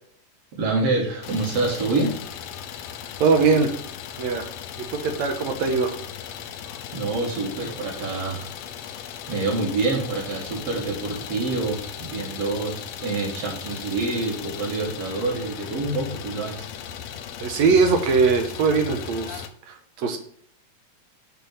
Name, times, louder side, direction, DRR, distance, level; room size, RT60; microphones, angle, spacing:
voice 1, 0.6-2.1 6.9-8.5 9.3-16.7, right 3 dB, 50° right, -2 dB, 3.1 m, -26 dB
Idling, 1.2-19.5, left 8 dB, 80° left, 1.5 m, -37 dB
voice 2, 3.2-3.7 4.2-4.5 4.8-6.0 17.4-20.2, right 4 dB, 65° right, 6 dB, 2.1 m, -21 dB
7.3 x 4.2 x 6.8 m, 0.62 s
omnidirectional pair, 3.7 m